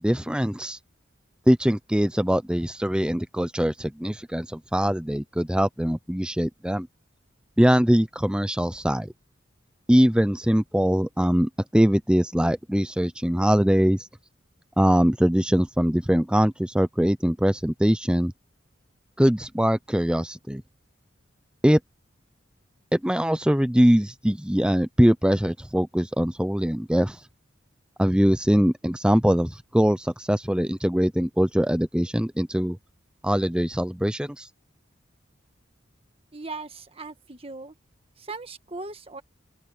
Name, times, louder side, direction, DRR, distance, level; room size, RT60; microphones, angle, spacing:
voice 1, 0.0-0.8 1.5-6.9 7.6-9.1 9.9-14.0 14.8-18.3 19.2-20.6 21.6-21.8 22.9-27.2 28.0-32.8 33.2-34.4, equal, 5° right, 0.7 m, -22 dB
voice 2, 36.3-37.7 38.2-39.2, right 3 dB, 30° right, 1.6 m, -38 dB
open air
head